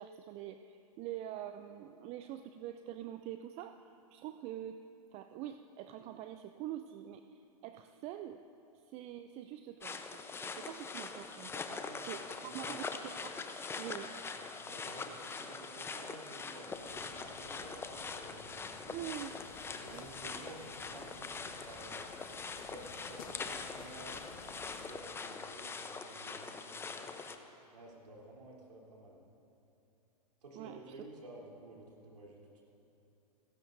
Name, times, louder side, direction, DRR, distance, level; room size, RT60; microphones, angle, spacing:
voice 1, 0.0-4.8 5.1-8.4 8.9-11.6 12.0-13.4 13.8-14.1 18.9-19.4 19.9-20.1 30.5-30.9, right 12 dB, 30° right, 9 dB, 0.5 m, -45 dB
sound 1, 9.8-27.4, left 4 dB, 10° left, 0.8 m, -43 dB
voice 2, 11.7-12.0 12.6-12.9 14.0-14.2 14.6-19.0 19.8-22.0 22.5-27.2 27.7-29.3 30.4-32.6, right 2 dB, 75° right, -3 dB, 3.6 m, -53 dB
sound 2, 16.7-24.9, left 5 dB, 60° left, 1.6 m, -55 dB
30.0 x 16.0 x 2.7 m, 3.0 s
hypercardioid pair, 110°, 20 cm